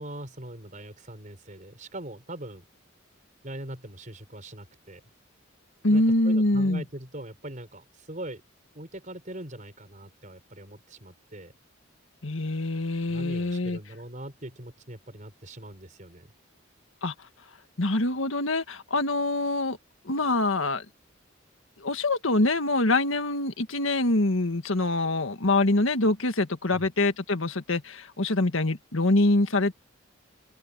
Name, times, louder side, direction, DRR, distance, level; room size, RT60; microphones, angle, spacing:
voice 1, 0.0-2.6 3.4-5.0 5.9-8.4 8.7-11.5 13.1-16.3 26.7-26.9, right 1 dB, 40° right, 4.7 m, -41 dB
voice 2, 5.8-6.8 12.2-13.8 17.0-17.1 17.8-19.8 20.0-20.8 21.8-29.7, left 2 dB, 80° left, 1.7 m, -25 dB
open air
head